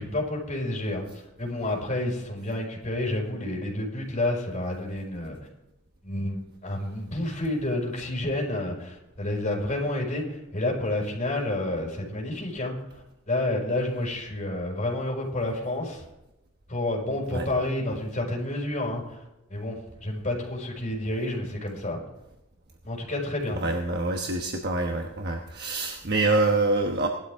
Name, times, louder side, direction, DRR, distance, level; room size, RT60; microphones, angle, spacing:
voice 1, 0.0-5.4 6.0-16.0 16.7-19.2 19.5-22.0 22.8-23.6, left 1 dB, 30° left, -2 dB, 5.4 m, -30 dB
voice 2, 23.5-27.1, right 2 dB, 45° right, 2 dB, 1.2 m, -26 dB
18.0 x 12.5 x 3.7 m, 0.93 s
head